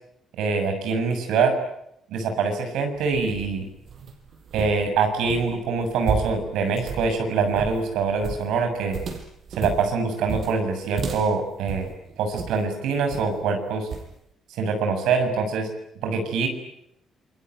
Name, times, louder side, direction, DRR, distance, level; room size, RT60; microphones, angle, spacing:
voice 1, 0.4-1.5 2.1-3.7 4.5-9.0 9.5-11.9 12.2-13.9 14.6-15.7 16.0-16.5, right 4 dB, 90° right, 6 dB, 6.9 m, -24 dB
sound 1, 2.9-12.7 13.1-13.5 13.9-14.1, right 5 dB, 60° right, 5.8 m, -34 dB
28.0 x 22.5 x 9.4 m, 0.80 s
cardioid pair, 90°, 0 cm